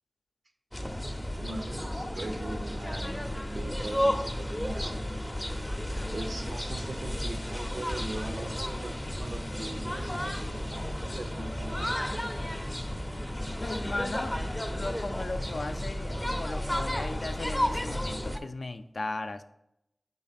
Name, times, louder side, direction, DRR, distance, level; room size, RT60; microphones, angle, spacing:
sound 1, 0.7-18.4, equal, 10° left, 0.5 m, -33 dB
voice 1, 1.4-5.1 6.1-12.5, right 2 dB, 90° right, 5 dB, 0.6 m, -41 dB
voice 2, 13.6-14.4 14.7-19.4, left 2 dB, 65° left, 9 dB, 0.4 m, -36 dB
5.2 x 3.8 x 5.7 m, 0.81 s
wide cardioid pair, 80°, 0 cm